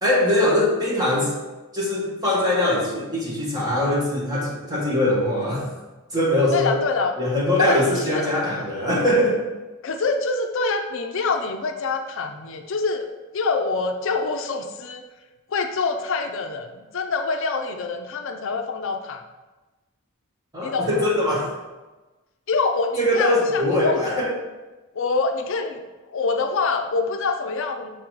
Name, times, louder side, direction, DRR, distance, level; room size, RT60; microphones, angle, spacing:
voice 1, 0.0-1.3 1.7-5.7 6.1-6.8 7.2-9.4 20.5-21.5 23.0-24.3, left 1 dB, 20° right, -6 dB, 1.8 m, -22 dB
voice 2, 6.5-7.2 7.6-8.4 9.8-13.1 13.3-15.0 15.5-19.2 20.6-20.9 22.5-24.3 24.9-25.8 26.1-27.9, left 4 dB, 65° left, 5 dB, 0.5 m, -25 dB
6.7 x 3.9 x 4.5 m, 1.2 s
head